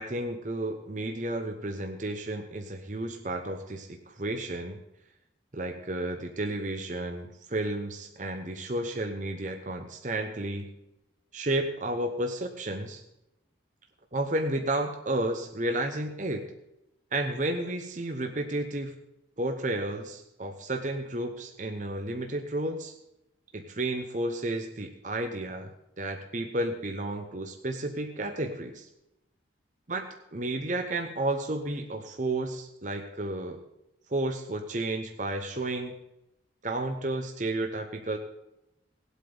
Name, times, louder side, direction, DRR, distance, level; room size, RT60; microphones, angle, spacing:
voice 1, 0.0-4.8 5.5-10.7 11.3-13.0 14.1-16.5 17.1-18.9 19.4-22.9 23.5-25.7 26.0-28.9 29.9-30.0 30.3-33.6 34.1-35.9 36.6-38.2, right 1 dB, 40° right, 5 dB, 0.9 m, -32 dB
19.0 x 8.2 x 3.9 m, 0.88 s
head